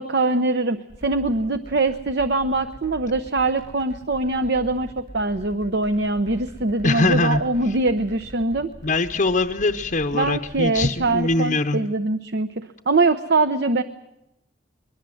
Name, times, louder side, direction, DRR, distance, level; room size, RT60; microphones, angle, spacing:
voice 1, 0.0-8.7 10.1-13.8, right 2 dB, 60° right, 10 dB, 0.8 m, -23 dB
sound 1, 0.9-11.4, equal, 45° right, 2.5 m, -43 dB
voice 2, 6.8-7.4 7.7-7.8 8.8-11.8, left 2 dB, 45° left, 5 dB, 0.8 m, -22 dB
22.5 x 21.5 x 7.8 m, 0.87 s
head